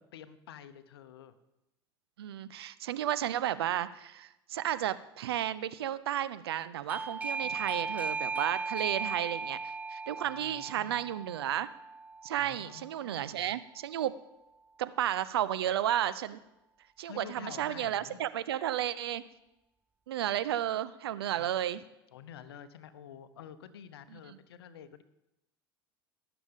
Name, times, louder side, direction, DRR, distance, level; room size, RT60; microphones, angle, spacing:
voice 1, 0.1-1.3 7.3-7.8 10.2-11.1 12.4-13.5 17.1-18.2 21.3-21.5 22.1-25.0, left 8 dB, 80° left, 13 dB, 0.8 m, -49 dB
voice 2, 2.2-11.7 12.2-14.1 14.8-16.4 17.0-19.2 20.1-21.8 24.1-24.4, right 11 dB, 85° right, 15 dB, 0.5 m, -33 dB
Doorbell, 6.9-13.4, right 4 dB, 10° right, 0.4 m, -37 dB
18.5 x 7.0 x 3.6 m, 0.90 s
hypercardioid pair, 85°, 13 cm